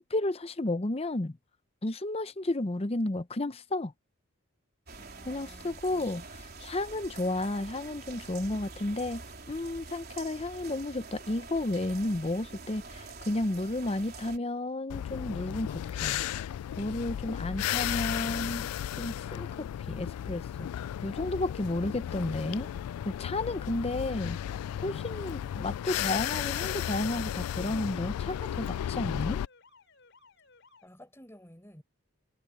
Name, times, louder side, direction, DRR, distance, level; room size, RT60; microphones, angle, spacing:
voice 1, 0.0-1.4 1.8-3.9 5.2-6.2 6.6-16.2 16.8-18.7 19.0-22.7 23.0-24.4 24.8-29.4, left 2 dB, 25° left, 0.6 m, -32 dB
sound 1, 4.9-14.4, right 4 dB, 45° right, 4.1 m, -46 dB
voice 2, 5.0-6.3 30.8-31.8, equal, 10° left, 7.6 m, -55 dB
sound 2, 14.9-29.5, left 10 dB, 85° left, 0.3 m, -34 dB
Alarm, 24.4-30.9, left 4 dB, 55° left, 5.6 m, -60 dB
head